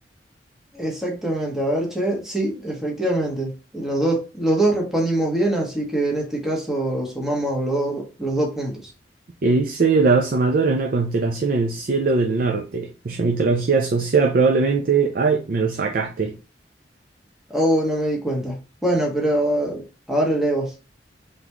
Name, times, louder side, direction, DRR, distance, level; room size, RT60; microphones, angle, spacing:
voice 1, 0.7-8.9 17.5-19.8 20.1-20.7, right 1 dB, 5° right, 1.2 m, -23 dB
voice 2, 9.4-16.3, right 4 dB, 55° right, 0.5 m, -20 dB
3.9 x 3.5 x 3.0 m
head